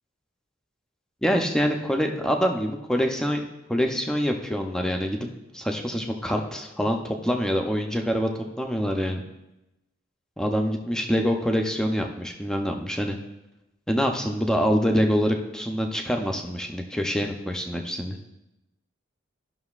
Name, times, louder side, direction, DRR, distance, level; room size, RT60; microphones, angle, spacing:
voice 1, 1.2-3.4 3.7-5.3 5.5-8.3 8.6-9.2 10.4-13.2 13.9-18.2, equal, 5° left, 2 dB, 0.6 m, -25 dB
13.5 x 5.9 x 2.4 m, 0.95 s
head